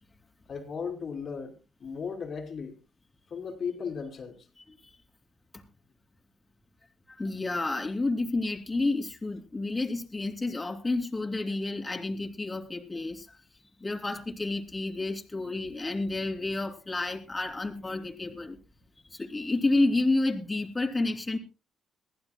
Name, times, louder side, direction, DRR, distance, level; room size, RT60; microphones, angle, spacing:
voice 1, 0.5-1.5 1.8-2.8 3.3-4.5, left 6 dB, 50° left, 2.8 m, -36 dB
voice 2, 7.1-13.4 13.8-18.6 19.1-21.4, left 2 dB, 20° left, 2.8 m, -30 dB
22.5 x 15.0 x 2.2 m
cardioid pair, 90°, 0 cm